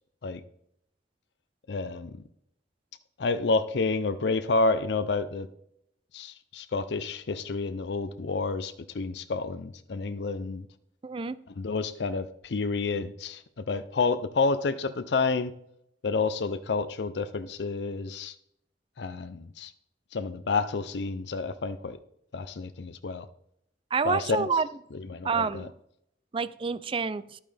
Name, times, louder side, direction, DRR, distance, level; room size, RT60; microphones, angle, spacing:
voice 1, 1.7-2.1 3.2-5.5 6.1-10.7 11.5-15.5 16.0-18.4 19.0-19.7 20.1-22.0 22.3-23.3 24.0-24.5 24.9-25.7, left 4 dB, 70° left, 11 dB, 0.5 m, -29 dB
voice 2, 11.0-11.4 23.9-24.7 25.2-25.7 26.3-27.4, right 5 dB, 30° right, 16 dB, 0.4 m, -28 dB
11.5 x 8.9 x 3.4 m, 0.73 s
head